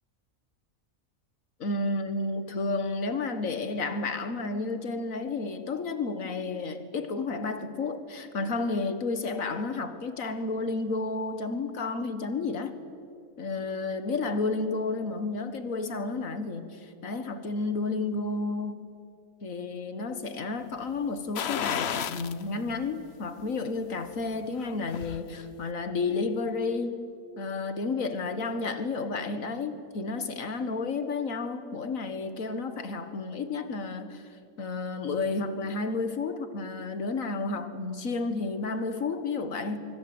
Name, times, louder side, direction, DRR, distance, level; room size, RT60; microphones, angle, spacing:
voice 1, 1.6-12.7 13.4-18.9 19.4-27.0 27.4-34.2 34.6-39.9, left 3 dB, 80° left, 2.0 m, -31 dB
sound 1, 21.4-22.4 22.8-22.9 24.4-25.2 25.6-25.7, left 8 dB, 55° left, 1.0 m, -32 dB
24.0 x 24.0 x 7.9 m
omnidirectional pair, 1.4 m